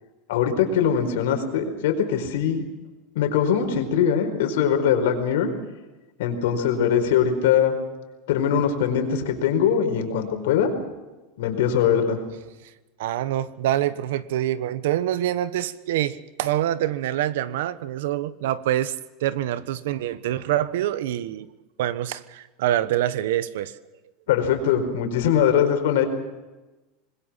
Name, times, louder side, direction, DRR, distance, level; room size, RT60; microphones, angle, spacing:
voice 1, 0.3-2.6 3.1-5.5 6.2-7.7 8.3-10.7 11.4-12.2 24.3-26.1, left 8 dB, 85° left, 6 dB, 4.7 m, -21 dB
voice 2, 13.0-18.9 19.2-21.5 21.8-23.8, right 12 dB, 85° right, 15 dB, 1.2 m, -25 dB
26.0 x 21.0 x 5.8 m, 1.1 s
supercardioid pair, 165°, 0 cm